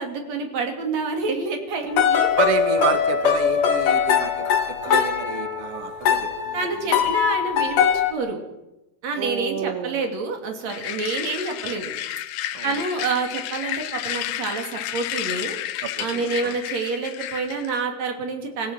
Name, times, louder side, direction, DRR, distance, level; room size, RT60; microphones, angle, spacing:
voice 1, 0.0-2.3 6.5-8.4 9.0-11.9 12.6-15.6 16.0-18.7, right 4 dB, 45° right, 4 dB, 3.5 m, -28 dB
sound 1, 1.9-8.1, left 7 dB, 55° left, 2.8 m, -21 dB
voice 2, 2.4-6.6 9.2-10.0 12.5-12.7 15.8-16.5, right 8 dB, 75° right, 9 dB, 1.3 m, -29 dB
sound 2, 10.7-17.8, left 13 dB, 75° left, 2.1 m, -31 dB
26.5 x 16.0 x 6.4 m, 0.98 s
omnidirectional pair, 4.8 m